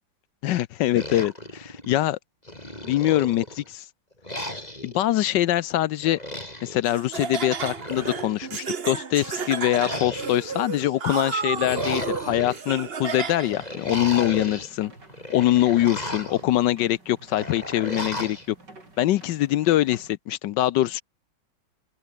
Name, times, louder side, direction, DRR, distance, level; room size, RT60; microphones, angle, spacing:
voice 1, 0.4-2.2 2.8-3.8 4.8-6.2 6.6-14.9 15.3-18.4 19.0-21.0, left 14 dB, 75° left, 1.2 m, -23 dB
sound 1, 0.9-2.1 2.5-3.7 4.2-5.0 6.0-6.8 7.6-8.6 9.6-10.6 11.4-12.6 13.5-14.7 15.1-16.4 17.3-18.5, left 1 dB, 20° left, 6.7 m, -35 dB
Laughter, 6.8-13.7, right 5 dB, 35° right, 1.3 m, -32 dB
sound 2, 13.5-20.2, right 2 dB, 60° right, 7.6 m, -50 dB
open air
omnidirectional pair, 2.1 m